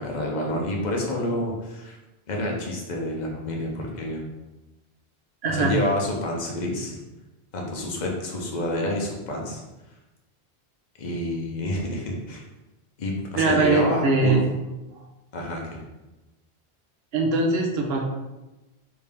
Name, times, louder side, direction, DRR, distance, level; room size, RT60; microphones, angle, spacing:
voice 1, 0.0-2.0 2.3-4.2 5.5-7.0 7.5-9.6 11.0-12.4 13.0-14.4 15.3-15.8, left 1 dB, 45° left, 0 dB, 0.8 m, -28 dB
voice 2, 5.4-5.7 13.3-14.4 17.1-18.0, right 3 dB, 75° right, 1 dB, 0.9 m, -21 dB
3.5 x 2.8 x 3.4 m, 1.0 s
omnidirectional pair, 1.1 m